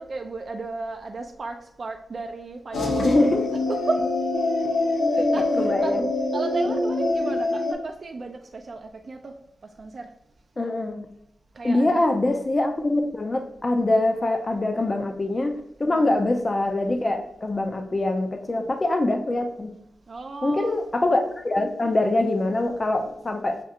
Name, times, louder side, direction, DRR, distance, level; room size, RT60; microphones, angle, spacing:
voice 1, 0.0-3.3 3.7-4.0 5.1-6.0 6.3-9.3 9.8-10.1 11.6-12.2 15.9-16.2 20.1-20.8, right 3 dB, 50° right, 4 dB, 0.4 m, -34 dB
sound 1, 2.7-7.7, left 2 dB, 90° left, 0.7 m, -24 dB
voice 2, 3.0-3.5 5.1-5.3 5.6-6.1 10.6-11.1 11.6-15.5 15.8-19.7 20.4-23.6, left 2 dB, 30° left, 5 dB, 0.4 m, -24 dB
6.6 x 2.4 x 2.7 m, 0.77 s
wide cardioid pair, 105°, 0 cm